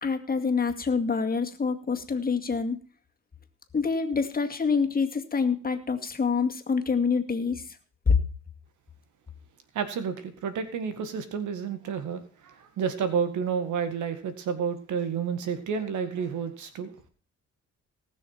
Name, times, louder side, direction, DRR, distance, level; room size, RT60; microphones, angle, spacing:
voice 1, 0.0-2.8 3.7-7.6 8.1-8.2, left 5 dB, 30° left, 5 dB, 2.1 m, -26 dB
voice 2, 9.7-16.9, right 6 dB, 75° right, 9 dB, 1.9 m, -30 dB
18.5 x 6.5 x 5.7 m, 0.41 s
cardioid pair, 90°, 30 cm